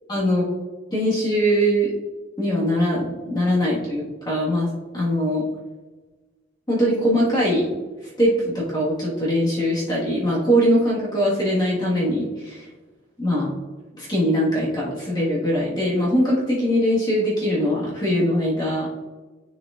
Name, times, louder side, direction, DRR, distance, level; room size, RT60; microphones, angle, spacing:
voice 1, 0.1-0.4 0.9-1.9 2.4-5.4 6.7-7.7 8.2-12.7 13.2-13.5 14.0-18.9, equal, 20° left, -6 dB, 1.6 m, -21 dB
10.0 x 4.9 x 2.5 m, 1.3 s
head